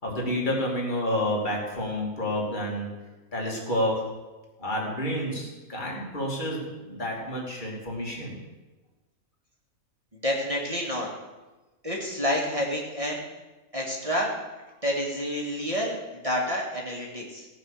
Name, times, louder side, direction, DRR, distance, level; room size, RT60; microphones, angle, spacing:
voice 1, 0.0-2.9 3.3-4.1 4.6-8.4, left 1 dB, 35° left, -3 dB, 2.9 m, -29 dB
voice 2, 10.2-11.1 11.8-13.2 13.7-14.4 14.8-17.5, equal, 25° right, -3 dB, 2.0 m, -29 dB
17.0 x 6.2 x 6.6 m, 1.2 s
omnidirectional pair, 1.5 m